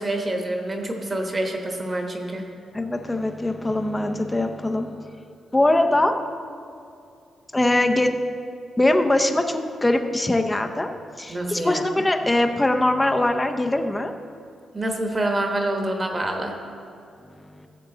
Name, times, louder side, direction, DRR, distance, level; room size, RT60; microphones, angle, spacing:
voice 1, 0.0-2.5 11.3-11.8 14.7-16.5, right 1 dB, 20° right, 2 dB, 1.1 m, -26 dB
voice 2, 2.7-5.2 5.5-6.2 7.5-8.1 8.8-10.9 11.2-14.1 17.3-17.7, left 1 dB, 10° left, 5 dB, 0.5 m, -22 dB
15.5 x 7.8 x 3.8 m, 2.5 s
wide cardioid pair, 175°, 0 cm